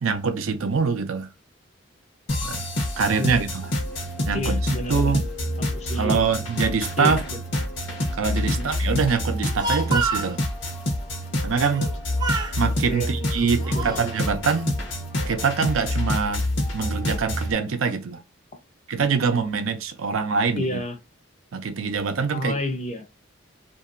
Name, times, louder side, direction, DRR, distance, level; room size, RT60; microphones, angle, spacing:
voice 1, 0.0-1.3 2.4-2.7 3.0-3.7 4.3-5.2 6.0-7.2 8.2-10.4 11.4-11.9 12.6-14.8 15.3-16.5 16.7-18.2 18.9-20.8 21.5-22.5, right 5 dB, 85° right, 0.5 m, -24 dB
sound 1, 2.3-17.5, left 1 dB, 60° left, 0.9 m, -27 dB
voice 2, 4.3-5.2 5.7-6.1 7.0-7.2 8.4-8.7 12.9-13.1 13.4-14.0 20.5-21.0 22.3-23.1, left 1 dB, 30° left, 0.5 m, -30 dB
Speech, 9.3-10.3 11.7-11.9 12.2-12.6 13.3-14.1, right 3 dB, 20° right, 0.5 m, -28 dB
2.8 x 2.6 x 2.5 m
head